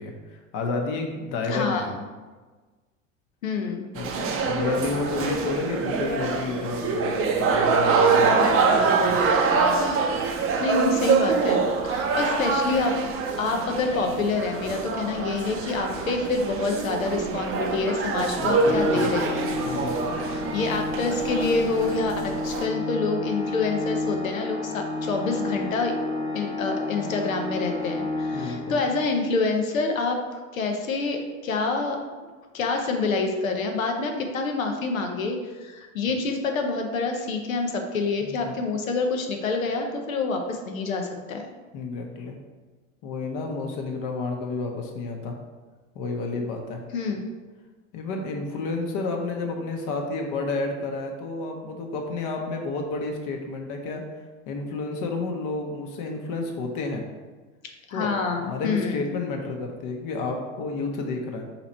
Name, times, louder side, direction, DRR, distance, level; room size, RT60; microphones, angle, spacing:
voice 1, 0.0-1.9 3.9-9.2 18.4-19.2 19.6-20.2 28.3-28.8 38.2-38.6 41.7-42.4 43.0-45.4 45.9-46.8 47.9-54.0 54.5-57.0 57.9-61.5, left 3 dB, 50° left, 2 dB, 0.9 m, -31 dB
voice 2, 1.5-2.0 3.4-3.9 10.6-13.0 13.4-19.5 20.5-26.0 26.3-30.2 30.5-32.3 32.5-41.4 46.9-47.2 57.9-59.0, left 3 dB, 90° left, 4 dB, 0.7 m, -27 dB
sound 1, 4.0-22.7, right 4 dB, 35° right, 0.6 m, -25 dB
Organ, 18.4-29.2, left 2 dB, 30° left, 1.4 m, -31 dB
3.9 x 2.8 x 4.3 m, 1.3 s
hypercardioid pair, 80°, 40 cm